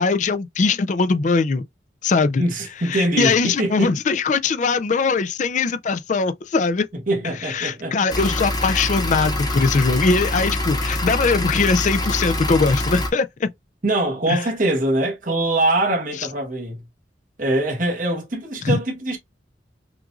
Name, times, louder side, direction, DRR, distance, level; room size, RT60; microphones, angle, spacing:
voice 1, 0.0-1.6 2.0-2.4 2.8-6.9 7.4-13.5 14.3-14.4 18.6-18.8, left 4 dB, 40° left, 0.4 m, -21 dB
voice 2, 2.4-3.9 7.1-8.0 13.8-16.8 17.4-19.2, right 1 dB, 45° right, 1.4 m, -23 dB
sound 1, 8.1-13.1, left 1 dB, 20° left, 1.0 m, -25 dB
5.9 x 2.5 x 2.4 m
head